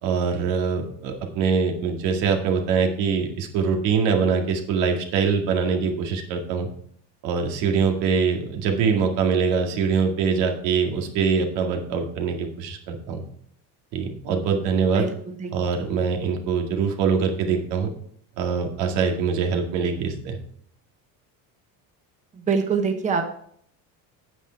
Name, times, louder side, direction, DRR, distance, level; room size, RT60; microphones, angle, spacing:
voice 1, 0.0-6.7 7.2-13.2 13.9-15.1 15.5-17.9 18.4-20.4, right 5 dB, 90° right, 3 dB, 2.2 m, -23 dB
voice 2, 14.9-15.5 22.3-23.2, right 5 dB, 15° right, 5 dB, 0.9 m, -25 dB
9.1 x 8.2 x 4.6 m, 0.64 s
cardioid pair, 180°, 42 cm